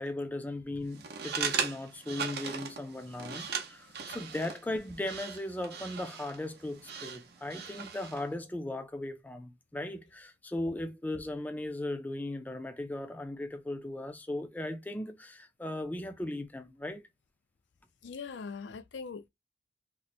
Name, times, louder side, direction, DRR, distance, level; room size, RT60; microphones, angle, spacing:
voice 1, 0.0-17.0, left 1 dB, 10° left, 0.4 m, -37 dB
sound 1, 0.9-8.3, right 6 dB, 60° right, 0.6 m, -38 dB
voice 2, 18.0-19.3, left 5 dB, 75° left, 0.5 m, -41 dB
2.9 x 2.1 x 4.1 m
head